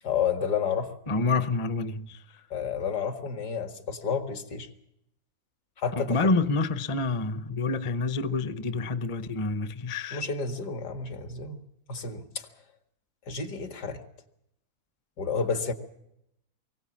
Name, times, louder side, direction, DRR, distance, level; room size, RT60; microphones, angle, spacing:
voice 1, 0.0-0.9 2.5-4.7 5.8-6.3 10.1-11.6 11.9-12.5 13.3-14.0 15.2-15.7, left 6 dB, 80° left, 2.4 m, -30 dB
voice 2, 1.1-2.4 6.0-10.2, left 3 dB, 35° left, 0.5 m, -28 dB
23.0 x 16.5 x 7.4 m
omnidirectional pair, 1.7 m